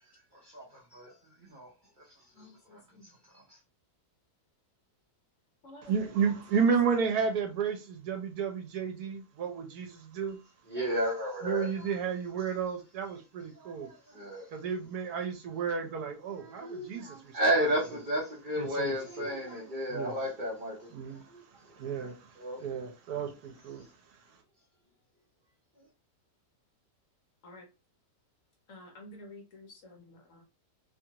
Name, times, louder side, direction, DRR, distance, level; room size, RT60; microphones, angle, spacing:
voice 1, 0.4-1.1 1.4-1.7 2.4-2.5 2.7-2.8 3.3-3.6 10.7-11.9 13.6-14.5 16.3-21.4 22.4-22.6, equal, 45° right, 0.7 m, -33 dB
voice 2, 2.3-3.1 5.6-6.1 27.4-27.7 28.7-30.4, left 1 dB, 60° left, 0.9 m, -51 dB
voice 3, 5.8-10.4 11.4-13.9 14.5-17.4 18.6-18.9 19.9-20.2 20.9-21.2 21.7-23.9, right 6 dB, 75° right, 1.2 m, -32 dB
2.9 x 2.4 x 2.8 m
omnidirectional pair, 1.7 m